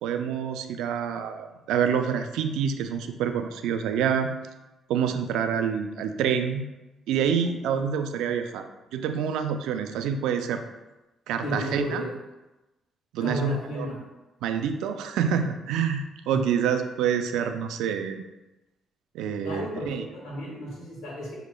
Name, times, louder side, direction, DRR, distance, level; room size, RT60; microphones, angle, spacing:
voice 1, 0.0-4.3 4.9-6.7 7.1-8.7 8.9-10.6 11.3-12.0 13.1-13.9 14.4-18.2 19.1-20.1, right 7 dB, 90° right, 7 dB, 0.3 m, -27 dB
voice 2, 11.4-12.1 13.2-14.0 16.3-16.4 19.4-21.3, equal, 85° left, -6 dB, 1.4 m, -33 dB
6.2 x 2.8 x 2.2 m, 1.0 s
cardioid pair, 90°, 0 cm